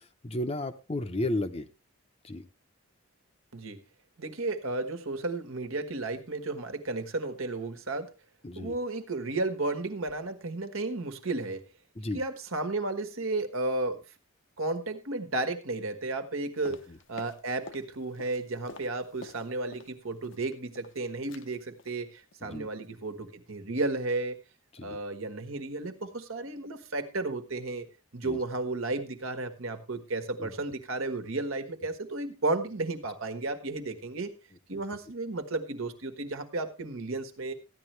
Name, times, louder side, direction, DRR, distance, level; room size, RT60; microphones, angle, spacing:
voice 1, 0.2-1.7 2.2-2.4 8.4-8.8 12.0-12.2 22.4-22.7 24.7-25.0 28.2-28.4 30.4-30.5, left 1 dB, 30° left, 8 dB, 0.7 m, -33 dB
voice 2, 4.2-8.1 8.5-11.7 12.1-14.0 14.6-24.4 24.8-27.9 28.1-34.3 34.7-37.5, right 2 dB, 80° right, 7 dB, 1.5 m, -33 dB
sound 1, 16.6-17.9 18.1-19.9 20.2-21.0 21.3-21.5 21.8-22.0 22.3-22.6 22.8-22.9, left 3 dB, 65° left, 0.8 m, -48 dB
14.5 x 10.5 x 3.3 m, 0.30 s
head